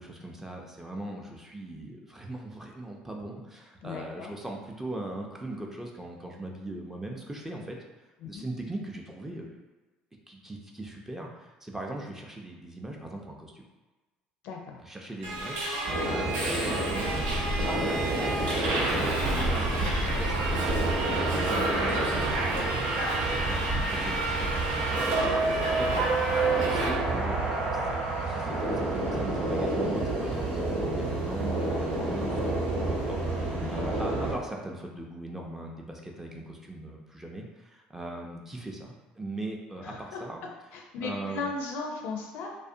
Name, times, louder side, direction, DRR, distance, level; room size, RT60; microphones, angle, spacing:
voice 1, 0.0-7.8 8.2-9.6 10.3-13.6 14.8-18.4 18.7-23.6 23.9-25.0 25.5-26.1 26.4-40.4 41.0-41.5, right 1 dB, 10° right, 0 dB, 0.4 m, -40 dB
voice 2, 3.8-4.3 8.2-8.4 14.4-14.8 33.6-33.9 39.8-40.2 40.7-42.5, left 4 dB, 70° left, 1 dB, 0.4 m, -37 dB
Subway metro underground, 15.2-26.9, right 2 dB, 75° right, 0.5 m, -29 dB
sound 1, 15.9-34.3, right 2 dB, 60° right, 0.9 m, -30 dB
2.4 x 2.1 x 2.6 m, 1.2 s
hypercardioid pair, 70°, 3 cm